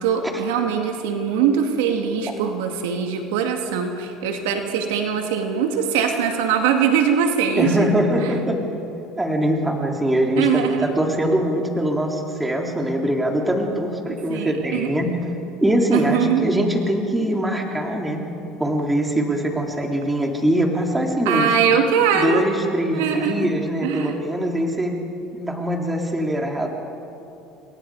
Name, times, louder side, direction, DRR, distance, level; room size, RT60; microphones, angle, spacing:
voice 1, 0.0-7.9 8.2-8.4 10.4-11.0 14.3-14.9 15.9-16.5 21.3-22.5 22.9-23.5 23.8-24.1, right 7 dB, 90° right, 4 dB, 2.4 m, -22 dB
voice 2, 7.6-8.6 9.2-15.1 15.6-18.2 18.6-21.5 22.1-25.0 25.3-26.7, equal, 10° right, 1 dB, 3.3 m, -22 dB
29.5 x 22.0 x 4.9 m, 2.8 s
supercardioid pair, 110°, 0 cm